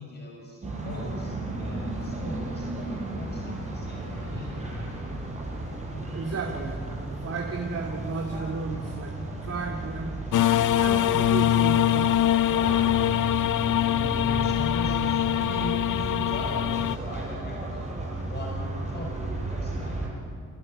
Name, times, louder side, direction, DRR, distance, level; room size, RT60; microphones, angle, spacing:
voice 1, 0.0-4.7 13.9-17.9 18.2-20.0, left 1 dB, 35° left, 0 dB, 5.7 m, -39 dB
sound 1, 0.6-20.1, right 2 dB, 25° right, 8.0 m, -34 dB
voice 2, 6.1-6.8 7.2-10.1 10.4-12.2, right 4 dB, 55° right, 0 dB, 2.6 m, -33 dB
sound 2, 10.3-17.0, left 11 dB, 85° left, 0.7 m, -23 dB
29.0 x 17.5 x 10.0 m, 2.1 s
cardioid pair, 115°, 30 cm